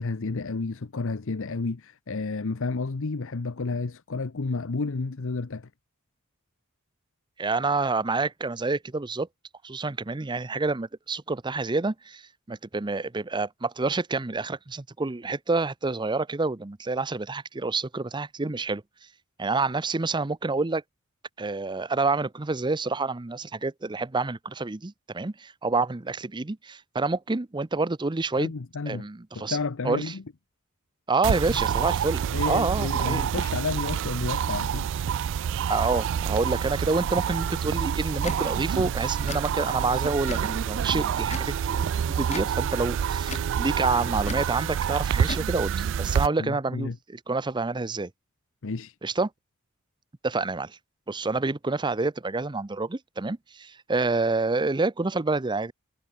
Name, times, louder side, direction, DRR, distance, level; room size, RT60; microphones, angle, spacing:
voice 1, 0.0-5.7 28.4-29.1 29.3-30.2 31.3-31.6 32.3-34.9 46.4-47.0 48.6-49.0, left 3 dB, 65° left, 0.8 m, -31 dB
voice 2, 7.4-9.3 9.6-12.2 12.5-18.8 19.4-20.8 21.4-28.5 28.9-29.6 29.8-30.1 31.1-33.3 35.6-48.1 49.0-49.3 50.2-50.8 51.1-55.7, right 3 dB, 20° right, 0.6 m, -28 dB
sound 1, 31.2-46.3, right 8 dB, 60° right, 0.3 m, -27 dB
Tick / Tick-tock, 38.2-38.4 39.2-39.4 40.2-40.5 41.2-41.5 42.2-42.5 43.2-43.5 44.2-44.5 45.2-45.5, left 4 dB, 30° left, 0.9 m, -37 dB
head